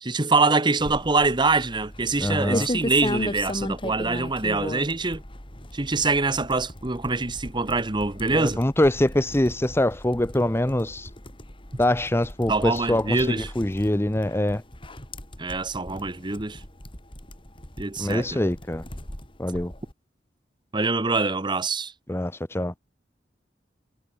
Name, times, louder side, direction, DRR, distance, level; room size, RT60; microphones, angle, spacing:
voice 1, 0.0-5.2 5.7-8.6 12.5-13.5 15.4-16.6 17.8-18.4 20.7-21.9, right 3 dB, 25° right, 1.2 m, -24 dB
sound 1, 0.8-19.9, left 1 dB, 30° left, 4.7 m, -37 dB
voice 2, 2.2-2.7 8.3-11.1 11.8-14.6 18.0-18.8 19.4-19.7 22.1-22.7, left 1 dB, 15° left, 0.8 m, -24 dB
head